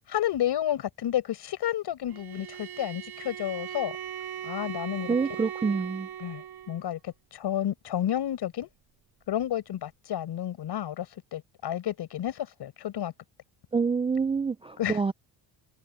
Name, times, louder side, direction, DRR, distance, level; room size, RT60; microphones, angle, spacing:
voice 1, 0.1-4.0 4.4-5.2 6.2-8.7 9.3-13.1 14.8-15.0, left 11 dB, 60° left, 5.6 m, -31 dB
Bowed string instrument, 2.1-6.8, right 9 dB, 55° right, 5.5 m, -39 dB
voice 2, 5.1-6.1 13.7-15.1, right 5 dB, 15° right, 0.4 m, -27 dB
cardioid pair, 105°, 45 cm